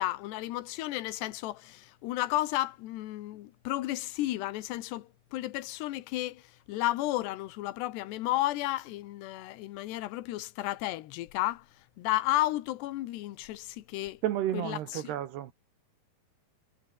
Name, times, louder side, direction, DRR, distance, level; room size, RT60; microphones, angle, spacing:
voice 1, 0.0-11.7 12.0-14.2 14.5-15.1, left 16 dB, 75° left, 3.2 m, -33 dB
voice 2, 14.2-15.5, right 12 dB, 70° right, 3.4 m, -31 dB
omnidirectional pair, 5.1 m